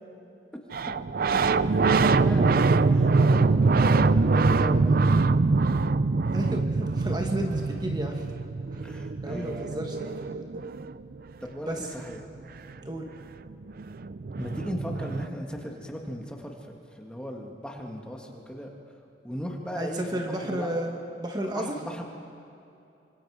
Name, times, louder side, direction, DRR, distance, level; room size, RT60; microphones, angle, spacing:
sound 1, 0.7-11.1 13.2-13.3 13.5-15.3, right 3 dB, 55° right, 0.5 m, -23 dB
voice 1, 1.3-5.1 8.8-9.8 11.4-12.2 14.4-16.6 17.0-18.7 19.2-20.7 21.5-22.0, equal, 5° left, 1 dB, 1.9 m, -37 dB
voice 2, 6.3-8.2 9.2-10.6 11.7-11.9 12.8-13.1 19.7-21.8, right 1 dB, 25° right, 2 dB, 1.7 m, -32 dB
26.5 x 25.0 x 4.9 m, 2.8 s
head